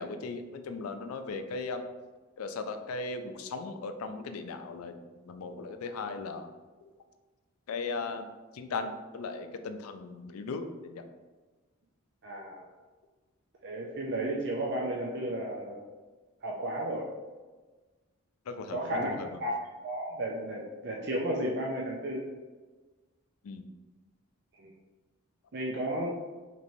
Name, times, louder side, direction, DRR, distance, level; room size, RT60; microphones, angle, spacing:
voice 1, 0.0-1.8 2.4-4.9 5.2-6.5 6.8-6.9 7.7-8.3 8.5-11.0 18.5-19.4 23.4-23.6, left 3 dB, 85° left, 8 dB, 0.4 m, -37 dB
voice 2, 12.2-12.6 13.6-15.8 16.4-17.1 18.7-22.3 24.6-24.7 25.5-26.1, right 1 dB, 50° right, -2 dB, 0.4 m, -33 dB
4.3 x 3.0 x 2.6 m, 1.3 s
head